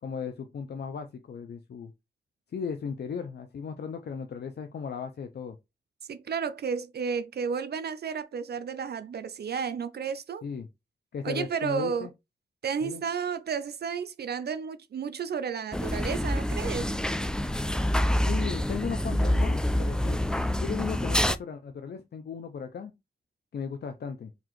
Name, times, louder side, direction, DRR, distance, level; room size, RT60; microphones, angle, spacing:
voice 1, 0.0-1.9 2.5-5.6 10.4-10.7 11.1-12.1 12.8-13.0 18.2-20.2 20.6-22.9 23.5-24.3, left 6 dB, 75° left, 0.5 m, -36 dB
voice 2, 6.1-10.5 11.2-12.1 12.6-16.9, right 6 dB, 70° right, 0.4 m, -32 dB
sound 1, 15.7-21.4, left 1 dB, 5° left, 0.4 m, -27 dB
4.0 x 2.7 x 3.0 m
cardioid pair, 45°, 17 cm